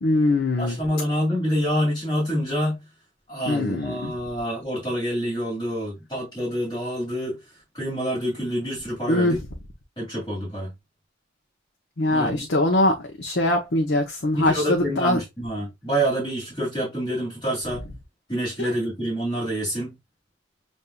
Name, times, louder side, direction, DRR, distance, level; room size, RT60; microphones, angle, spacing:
voice 1, 0.0-0.8 3.5-4.1 9.1-9.4 12.0-15.2 18.6-18.7, left 1 dB, 55° left, 0.8 m, -22 dB
voice 2, 0.6-2.8 3.3-7.4 7.7-9.4 10.0-10.7 12.1-12.4 14.3-17.8 18.3-19.9, equal, 25° left, 2.5 m, -27 dB
7.2 x 2.6 x 2.2 m
head